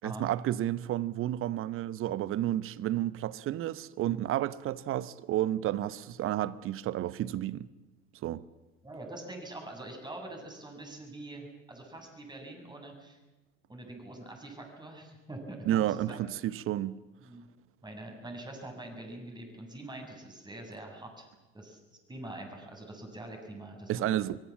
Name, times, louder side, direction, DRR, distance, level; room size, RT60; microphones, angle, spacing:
voice 1, 0.0-7.7 8.2-8.4 15.7-16.9 23.9-24.4, right 13 dB, 40° right, 1.0 m, -31 dB
voice 2, 8.8-13.2 13.7-16.2 17.2-17.4 17.8-21.3 21.5-21.8 22.1-24.1, right 2 dB, 15° right, 7.5 m, -44 dB
25.0 x 22.5 x 7.4 m
figure-of-eight pair, 70°, 32 cm